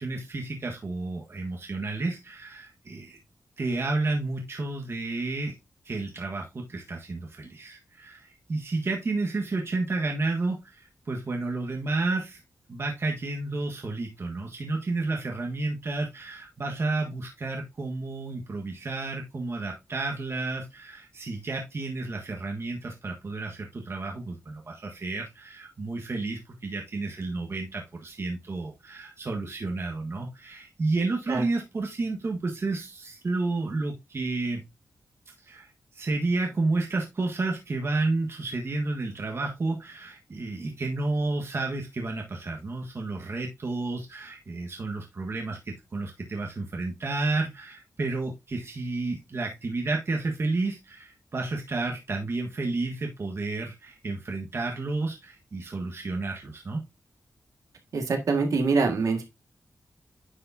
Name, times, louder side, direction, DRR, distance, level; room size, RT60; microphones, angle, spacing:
voice 1, 0.0-3.2 3.6-5.5 5.8-12.4 12.7-34.6 35.4-56.8, right 3 dB, 50° right, 0 dB, 1.5 m, -31 dB
voice 2, 57.9-59.2, right 4 dB, 80° right, 4 dB, 1.8 m, -24 dB
10.0 x 5.0 x 2.7 m, 0.22 s
wide cardioid pair, 85°, 6 cm